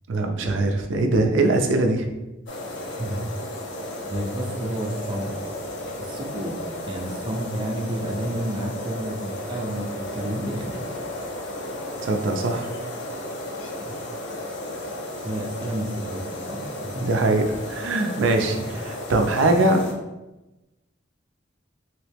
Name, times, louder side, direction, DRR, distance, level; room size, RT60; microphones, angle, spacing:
voice 1, 0.1-2.1 12.0-12.7 17.0-18.6 19.1-19.8, right 2 dB, 80° right, 4 dB, 0.5 m, -21 dB
sound 1, 2.5-19.9, left 1 dB, 65° left, 0.6 m, -34 dB
voice 2, 2.9-3.2 4.1-5.4 6.0-6.6 6.9-9.9 10.1-10.8 13.8-14.0 14.3-14.4 15.2-17.1 18.9-19.0, right 1 dB, 25° right, -1 dB, 0.5 m, -31 dB
3.1 x 3.0 x 3.3 m, 1.0 s
head